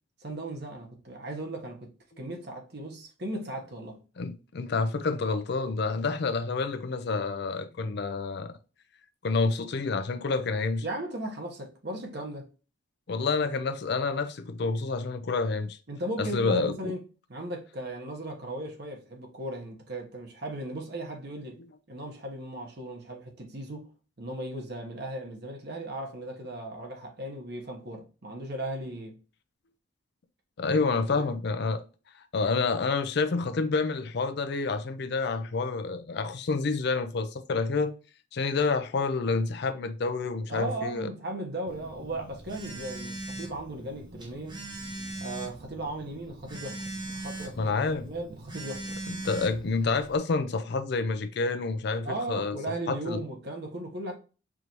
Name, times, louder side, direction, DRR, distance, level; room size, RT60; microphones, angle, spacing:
voice 1, 0.2-1.9 2.2-4.0 10.8-12.5 15.9-17.0 17.3-21.6 21.9-23.9 24.2-29.2 31.1-31.3 40.5-44.6 45.2-46.8 47.1-49.0 52.0-54.2, right 1 dB, 55° right, 1.1 m, -37 dB
voice 2, 4.2-8.5 9.2-10.8 13.1-15.8 16.2-16.9 30.6-31.8 32.3-37.9 38.3-41.1 47.6-48.1 49.1-52.6 52.9-53.2, left 4 dB, 55° left, 0.4 m, -28 dB
Telephone, 41.7-50.2, right 2 dB, 20° right, 0.6 m, -40 dB
4.8 x 2.6 x 2.9 m
head